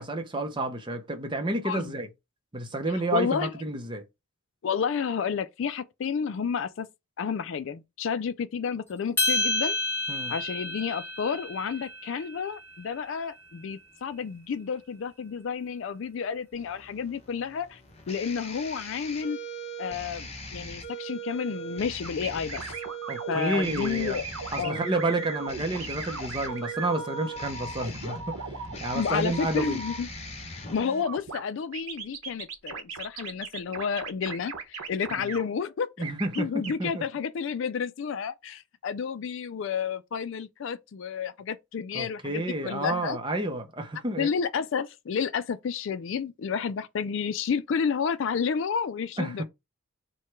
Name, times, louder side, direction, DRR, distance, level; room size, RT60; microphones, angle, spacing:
voice 1, 0.0-2.1 2.5-4.0 10.1-10.3 23.1-24.2 24.5-29.8 35.1-35.3 36.0-37.0 41.9-44.3 49.2-49.4, right 2 dB, 20° right, 0.6 m, -30 dB
voice 2, 3.1-3.5 4.6-6.9 7.2-9.8 10.3-17.8 18.1-19.4 19.8-22.6 23.3-24.3 24.6-24.9 28.9-30.1 30.7-36.1 36.4-43.2 44.2-49.4, left 6 dB, 60° left, 0.3 m, -31 dB
sound 1, 9.2-13.6, left 2 dB, 10° left, 1.2 m, -31 dB
sound 2, 16.5-31.0, right 2 dB, 30° left, 0.9 m, -40 dB
sound 3, 22.0-30.0 31.0-31.4 31.7-35.4 36.0-36.7, right 4 dB, 85° right, 1.0 m, -38 dB
4.6 x 2.2 x 4.5 m
head